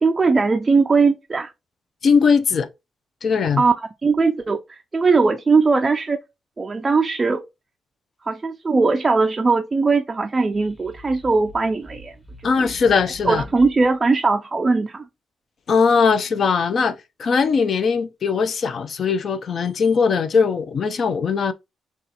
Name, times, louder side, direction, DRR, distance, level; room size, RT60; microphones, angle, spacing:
voice 1, 0.0-1.5 3.6-3.7 4.0-6.2 6.6-7.4 8.3-12.1 12.6-12.7 13.2-15.1, right 4 dB, 25° right, 0.3 m, -19 dB
voice 2, 2.0-2.7 3.2-3.6 12.4-13.4 15.7-16.9 17.2-21.5, left 5 dB, 50° left, 0.4 m, -19 dB
sound 1, 10.3-13.9, equal, 10° left, 1.0 m, -43 dB
6.3 x 2.3 x 2.8 m
cardioid pair, 125°, 0 cm